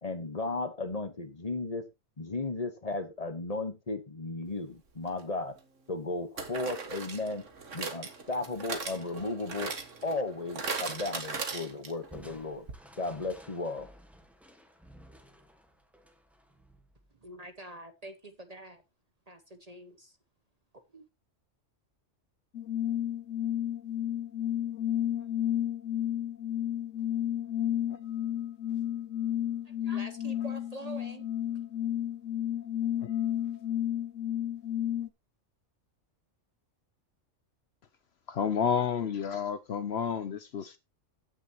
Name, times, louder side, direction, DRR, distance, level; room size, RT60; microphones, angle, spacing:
voice 1, 0.0-1.9 2.2-5.6 5.9-7.5 7.7-9.7 10.0-12.7 13.0-13.9, left 3 dB, 30° left, 1.3 m, -35 dB
sound 1, 5.1-5.2 6.4-12.1 12.4-12.5 12.7-12.8, right 4 dB, 75° right, 1.8 m, -38 dB
Crushing, 12.1-17.5, equal, ahead, 1.4 m, -54 dB
voice 2, 17.2-18.8 19.3-20.2 20.7-21.1 29.6-31.3 33.4-33.6, right 2 dB, 35° right, 0.9 m, -46 dB
sound 2, 22.5-35.1, left 11 dB, 85° left, 1.2 m, -32 dB
voice 3, 38.3-40.8, left 7 dB, 60° left, 0.9 m, -30 dB
15.5 x 6.4 x 3.0 m
omnidirectional pair, 1.3 m